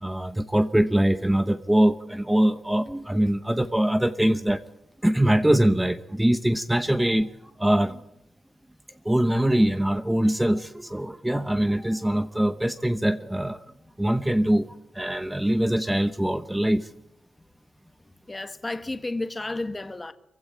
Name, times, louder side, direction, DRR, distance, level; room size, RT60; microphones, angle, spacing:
voice 1, 0.0-4.6 5.0-7.3 7.6-8.0 9.1-13.6 14.0-14.7 14.9-16.9, right 1 dB, 5° right, 0.9 m, -23 dB
voice 2, 18.3-20.1, left 2 dB, 20° left, 1.5 m, -32 dB
25.5 x 16.0 x 9.9 m
wide cardioid pair, 135°, 0 cm